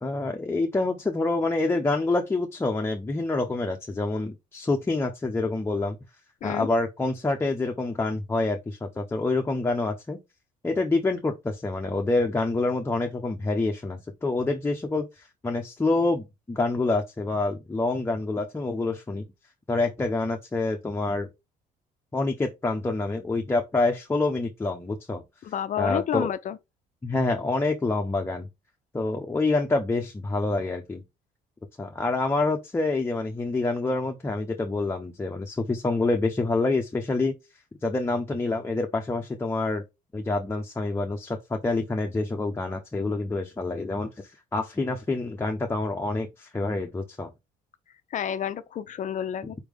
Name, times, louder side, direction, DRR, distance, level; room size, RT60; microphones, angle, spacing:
voice 1, 0.0-6.0 6.4-10.2 10.6-19.2 19.7-21.3 22.1-25.2 25.8-26.3 27.0-28.5 28.9-31.0 31.8-37.3 37.8-39.8 40.1-47.3, left 2 dB, 15° left, 0.8 m, -27 dB
voice 2, 25.4-26.6 48.1-49.6, left 9 dB, 50° left, 0.5 m, -30 dB
4.5 x 3.4 x 3.4 m
cardioid pair, 110°, 17 cm